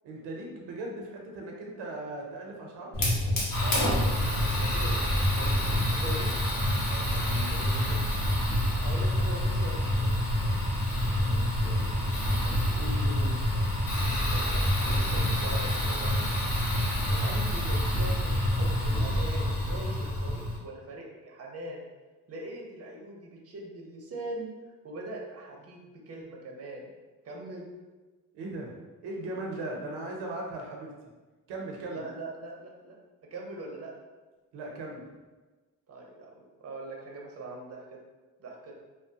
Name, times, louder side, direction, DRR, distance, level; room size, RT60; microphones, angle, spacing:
voice 1, 0.0-3.0 6.9-8.0 11.2-13.4 28.3-28.8 29.0-30.9 31.5-32.0 34.5-35.0, right 2 dB, 90° right, 0 dB, 0.6 m, -39 dB
Fire, 2.9-20.6, left 1 dB, 50° left, 0.9 m, -27 dB
voice 2, 3.6-5.6 5.9-6.3 8.8-10.2 14.2-16.2 17.0-21.8 22.3-24.5 24.8-25.8 26.1-26.9 27.2-27.7 31.9-33.0 33.3-33.9 35.9-37.8 38.4-38.7, right 2 dB, 35° right, 0 dB, 0.6 m, -41 dB
3.0 x 2.0 x 2.7 m, 1.2 s
cardioid pair, 75°, 42 cm